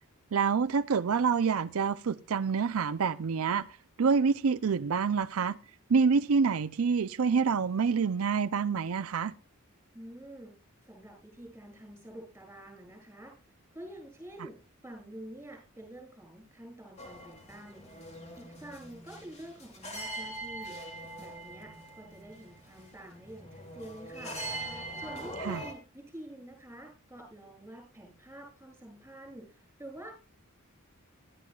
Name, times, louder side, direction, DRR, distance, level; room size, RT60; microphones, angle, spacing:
voice 1, 0.3-5.6 5.9-9.3 25.5-25.6, right 5 dB, 80° right, 0.5 m, -27 dB
voice 2, 9.9-10.6 10.8-13.3 13.7-14.6 14.8-17.8 18.4-20.8 21.2-24.4 25.0-30.1, right 1 dB, 10° right, 7.9 m, -47 dB
sound 1, 17.0-25.7, right 1 dB, 30° left, 2.8 m, -42 dB
20.0 x 12.0 x 2.3 m
head